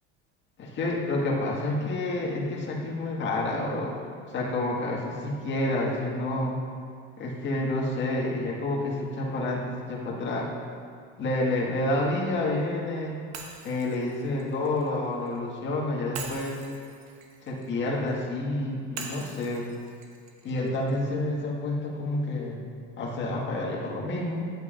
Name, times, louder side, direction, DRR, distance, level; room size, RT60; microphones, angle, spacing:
voice 1, 0.6-3.9 4.3-6.6 7.2-10.5 11.2-13.2 13.6-16.6 17.5-19.7 20.4-22.6 23.0-24.5, left 2 dB, 40° left, -3 dB, 1.8 m, -29 dB
Shatter, 13.3-15.4 16.1-18.2 19.0-21.1, right 5 dB, 60° right, 1.2 m, -43 dB
11.0 x 8.0 x 2.5 m, 2.2 s
supercardioid pair, 110°, 30 cm